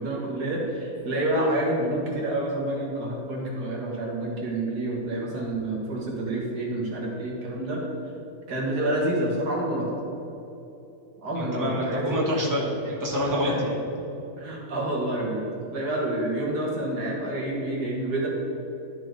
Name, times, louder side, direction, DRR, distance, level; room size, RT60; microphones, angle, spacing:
voice 1, 0.0-7.8 8.5-9.9 11.2-12.1 13.4-13.6 14.4-15.5 15.7-18.3, right 1 dB, 80° right, -3 dB, 2.2 m, -28 dB
voice 2, 11.3-13.8, equal, 10° right, -5 dB, 1.6 m, -26 dB
12.5 x 4.3 x 4.7 m, 3.0 s
omnidirectional pair, 1.7 m